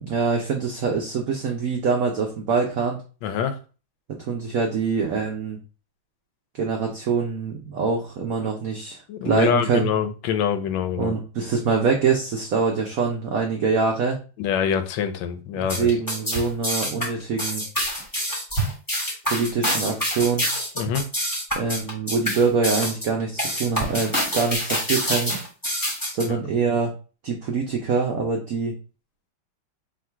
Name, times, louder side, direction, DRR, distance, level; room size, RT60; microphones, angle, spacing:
voice 1, 0.0-3.0 4.2-5.6 6.6-9.9 11.0-14.2 15.7-17.6 19.3-20.5 21.5-25.3 26.1-26.9 27.2-28.7, right 5 dB, 75° right, 1 dB, 0.8 m, -24 dB
voice 2, 3.2-3.6 9.1-11.1 14.4-15.9 20.8-21.1 26.2-26.3, left 8 dB, 75° left, 8 dB, 1.3 m, -25 dB
sound 1, 15.6-26.3, equal, 15° left, 0.7 m, -26 dB
3.7 x 2.4 x 4.4 m, 0.35 s
omnidirectional pair, 2.3 m